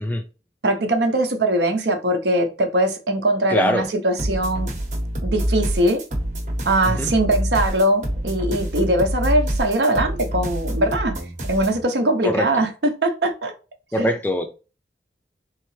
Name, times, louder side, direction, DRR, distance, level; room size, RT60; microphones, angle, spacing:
voice 1, 0.6-4.7 5.2-6.0 6.7-11.2 11.5-13.5 14.0-14.1, right 1 dB, 80° right, 0.7 m, -21 dB
voice 2, 3.5-3.9 7.0-7.1 12.2-12.5 13.9-14.5, left 1 dB, 10° left, 0.3 m, -22 dB
sound 1, 4.2-11.8, equal, 40° right, 0.8 m, -26 dB
3.8 x 3.2 x 3.1 m
head